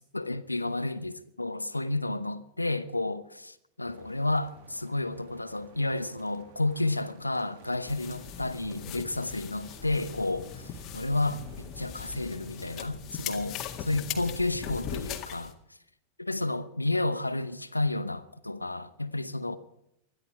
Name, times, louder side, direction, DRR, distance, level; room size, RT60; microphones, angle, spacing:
voice 1, 0.1-15.5 16.2-19.6, left 2 dB, 85° left, 0.8 m, -31 dB
sound 1, 3.8-12.9, right 7 dB, 50° right, 1.5 m, -54 dB
sound 2, 7.9-15.5, left 9 dB, 35° left, 1.9 m, -40 dB
21.0 x 13.0 x 4.7 m
figure-of-eight pair, 90°, 0 cm